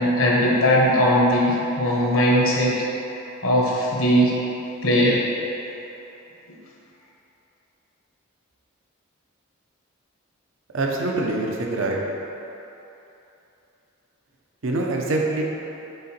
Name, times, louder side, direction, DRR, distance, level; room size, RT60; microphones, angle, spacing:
voice 1, 0.0-2.7 3.4-4.4 4.8-5.2, equal, 75° left, -4 dB, 1.2 m, -19 dB
voice 2, 10.7-12.0 14.6-15.4, right 2 dB, 65° right, -1 dB, 0.8 m, -24 dB
6.7 x 3.7 x 4.3 m, 3.0 s
head